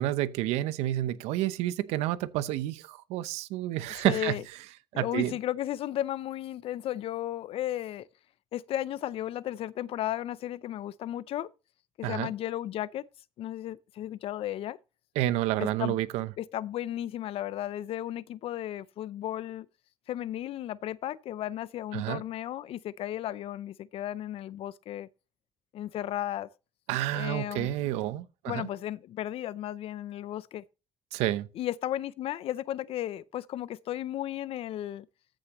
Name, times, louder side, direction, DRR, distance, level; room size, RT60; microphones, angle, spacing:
voice 1, 0.0-4.4 4.9-5.3 12.0-12.3 15.2-16.3 21.9-22.2 26.9-28.7 31.1-31.5, right 14 dB, 85° right, 0.8 m, -29 dB
voice 2, 3.9-4.4 4.9-8.1 8.5-11.5 12.0-13.1 13.4-14.8 15.6-16.0 16.4-19.7 20.1-25.1 25.7-26.5 27.1-27.7 28.5-30.6 31.5-35.1, left 12 dB, 60° left, 0.6 m, -34 dB
14.0 x 6.3 x 3.0 m
cardioid pair, 90°, 11 cm